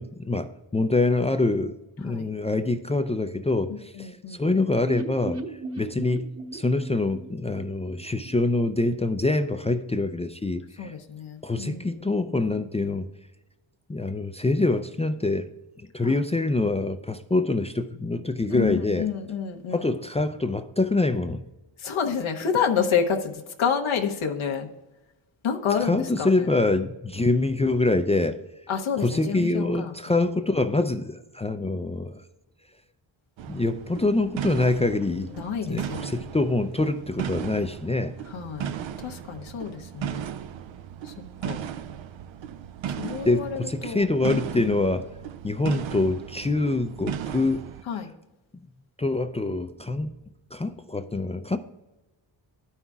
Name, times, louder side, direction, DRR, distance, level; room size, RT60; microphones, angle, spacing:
voice 1, 0.0-10.9 11.4-13.1 13.9-15.5 15.9-19.1 19.7-21.4 25.8-28.4 29.0-32.2 33.5-35.3 35.6-38.1 43.2-45.1 45.4-47.7 48.0-48.1 49.0-50.1 50.5-51.6, left 2 dB, 15° left, 8 dB, 0.4 m, -25 dB
voice 2, 3.9-4.4 10.8-12.1 16.0-16.2 18.5-19.9 21.8-24.7 25.4-26.6 28.7-30.2 35.4-36.3 38.3-38.7 39.0-40.3 41.0-41.1 41.4-41.6 42.9-44.8 47.9-48.1, left 7 dB, 75° left, 2 dB, 0.9 m, -29 dB
sound 1, 4.9-8.7 9.0-9.1 9.4-9.5, right 2 dB, 30° right, 1.1 m, -37 dB
sound 2, 33.4-47.8, right 9 dB, 70° right, 0.6 m, -36 dB
12.0 x 5.6 x 2.3 m, 1.1 s
cardioid pair, 55°, 48 cm